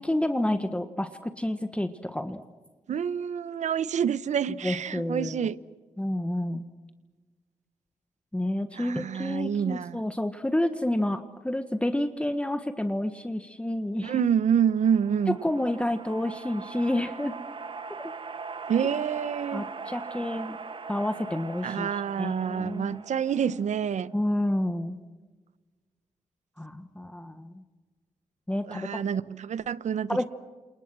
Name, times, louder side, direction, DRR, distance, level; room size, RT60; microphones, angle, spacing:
voice 1, 0.0-2.4 4.6-5.5 6.0-6.6 8.3-14.2 15.4-17.4 18.0-18.1 19.5-20.6 20.9-21.9 22.2-23.0 24.1-24.9 26.6-27.6 28.5-28.9 30.1-30.3, left 1 dB, 10° left, 1.5 m, -29 dB
voice 2, 2.9-5.6 8.7-10.0 14.0-15.4 18.7-19.7 21.6-24.1 28.7-30.3, right 8 dB, 80° right, 0.9 m, -27 dB
sound 1, 14.5-24.1, right 4 dB, 45° right, 1.7 m, -41 dB
29.5 x 28.0 x 6.2 m
cardioid pair, 95°, 12 cm